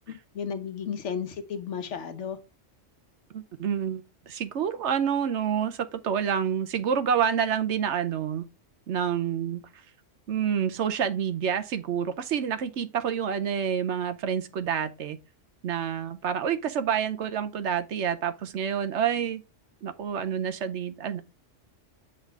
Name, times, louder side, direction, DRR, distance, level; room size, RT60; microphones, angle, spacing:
voice 1, 0.1-2.4, left 7 dB, 70° left, 1.2 m, -34 dB
voice 2, 3.3-8.4 8.9-9.6 10.3-15.2 15.6-19.4 19.8-21.2, right 8 dB, 65° right, 1.0 m, -28 dB
7.5 x 3.7 x 4.6 m
omnidirectional pair, 1.3 m